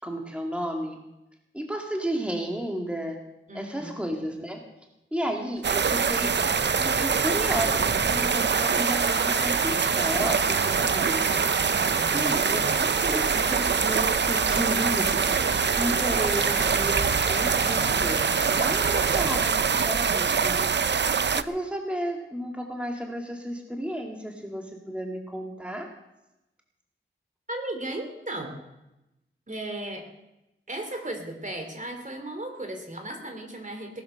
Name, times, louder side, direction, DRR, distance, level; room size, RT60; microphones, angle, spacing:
voice 1, 0.0-1.0 1.5-3.2 3.5-4.6 5.1-6.3 6.8-11.4 12.1-13.2 13.8-20.7 21.3-25.9, equal, 5° right, 1 dB, 2.2 m, -33 dB
voice 2, 3.5-4.1 11.9-13.8 27.5-28.6 29.5-30.1 30.7-34.0, right 1 dB, 35° right, 5 dB, 3.1 m, -36 dB
sound 1, 5.6-19.4, left 1 dB, 15° left, 6.6 m, -37 dB
sound 2, 5.6-21.4, right 6 dB, 55° right, 0.6 m, -24 dB
18.5 x 10.5 x 6.5 m, 0.95 s
wide cardioid pair, 70°, 21 cm